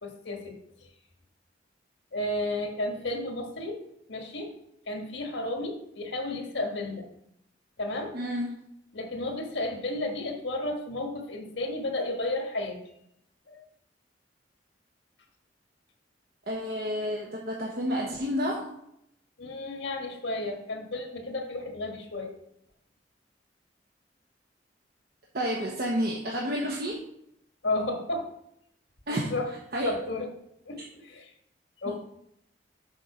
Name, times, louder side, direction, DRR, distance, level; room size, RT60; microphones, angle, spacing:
voice 1, 0.0-0.6 2.1-3.8 4.1-4.5 4.9-7.1 7.8-8.2 8.9-12.8 13.5-13.6 19.4-22.3 27.6-28.3 29.1-29.5 29.8-30.3 30.7-31.3 31.8-32.0, left 2 dB, 85° left, 3 dB, 1.4 m, -32 dB
voice 2, 8.1-8.6 16.5-18.7 25.3-27.0 29.1-29.3 29.7-29.9, equal, 60° right, -2 dB, 1.1 m, -30 dB
6.7 x 4.5 x 5.6 m, 0.77 s
head